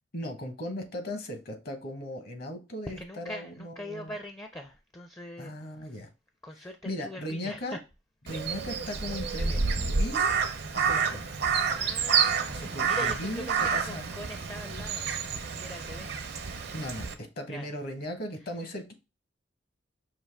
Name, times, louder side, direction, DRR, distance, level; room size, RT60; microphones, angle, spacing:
voice 1, 0.1-4.1 5.4-6.1 6.8-7.8 8.3-10.4 10.7-11.3 12.5-14.0 16.7-18.9, left 1 dB, 60° left, 1.1 m, -37 dB
voice 2, 2.9-6.0 6.4-7.8 10.9-11.3 11.7-15.1 15.6-16.8 17.5-17.7 18.4-18.5, left 1 dB, 15° left, 0.4 m, -43 dB
Crow, 8.3-17.1, right 6 dB, 65° right, 0.6 m, -29 dB
5.6 x 2.6 x 3.3 m
head